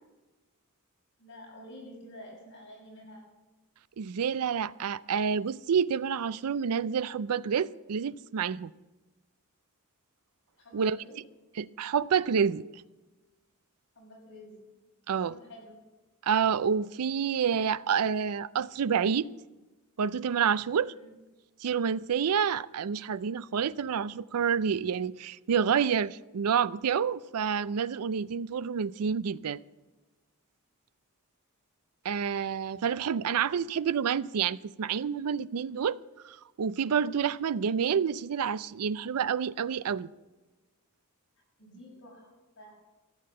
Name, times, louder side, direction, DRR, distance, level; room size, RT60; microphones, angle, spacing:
voice 1, 1.2-3.3 10.6-11.2 13.9-14.8 15.1-15.8 21.0-21.1 41.6-42.8, left 1 dB, 55° left, 6.6 m, -49 dB
voice 2, 4.0-8.7 10.7-11.0 11.6-12.6 15.1-15.3 16.2-19.3 20.0-20.9 21.6-29.6 32.0-36.0 36.2-40.1, right 7 dB, 80° right, 0.4 m, -28 dB
15.0 x 8.7 x 7.6 m
head